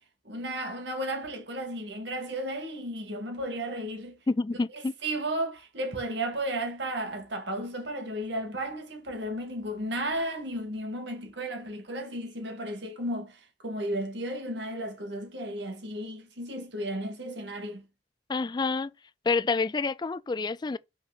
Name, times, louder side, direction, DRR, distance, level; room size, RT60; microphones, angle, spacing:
voice 1, 0.3-4.2 4.7-17.9, right 1 dB, 65° right, 1.9 m, -34 dB
voice 2, 4.3-4.9 18.3-18.9 19.3-20.8, left 4 dB, 25° left, 0.3 m, -28 dB
5.8 x 4.4 x 4.1 m
head